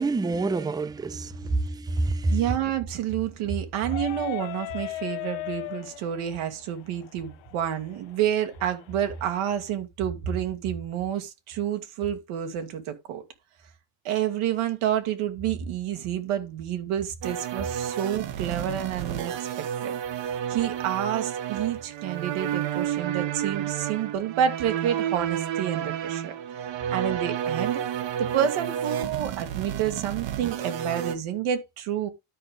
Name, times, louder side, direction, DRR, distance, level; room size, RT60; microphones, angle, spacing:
voice 1, 0.0-2.4, right 2 dB, 10° right, 0.5 m, -27 dB
voice 2, 2.3-13.2 14.0-19.9 20.5-26.4 26.9-27.8 28.2-32.1, right 10 dB, 80° right, 2.2 m, -29 dB
sound 1, 3.8-9.4, left 16 dB, 65° left, 0.9 m, -38 dB
sound 2, 17.2-31.1, right 10 dB, 65° right, 1.4 m, -31 dB
12.5 x 5.1 x 3.5 m
cardioid pair, 120°, 49 cm